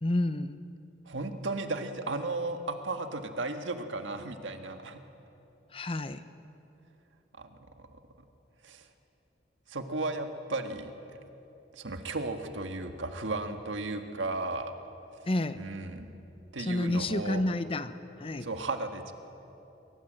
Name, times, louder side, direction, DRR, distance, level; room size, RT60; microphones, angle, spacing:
voice 1, 0.0-0.6 5.7-6.2 15.3-15.6 16.6-18.5, left 1 dB, 30° left, 12 dB, 0.7 m, -30 dB
voice 2, 1.0-5.0 7.3-7.9 8.6-8.9 9.7-10.9 11.7-14.7 15.5-16.1 16.5-17.4 18.4-19.1, right 2 dB, 90° right, 6 dB, 1.6 m, -35 dB
22.0 x 19.0 x 7.6 m, 2.9 s
head